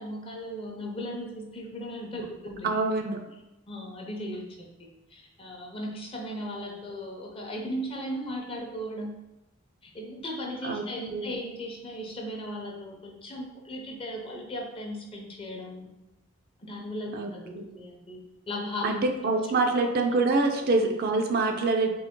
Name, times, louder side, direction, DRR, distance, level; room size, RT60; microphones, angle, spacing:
voice 1, 0.0-2.7 3.7-9.2 9.8-15.9 16.6-18.2 18.5-18.9, equal, 25° left, 0 dB, 0.6 m, -37 dB
voice 2, 2.6-3.2 10.6-10.8 11.1-11.3 17.1-17.3 17.6-17.7 18.8-21.9, right 3 dB, 45° right, 4 dB, 0.4 m, -25 dB
3.8 x 2.9 x 3.6 m, 0.95 s
head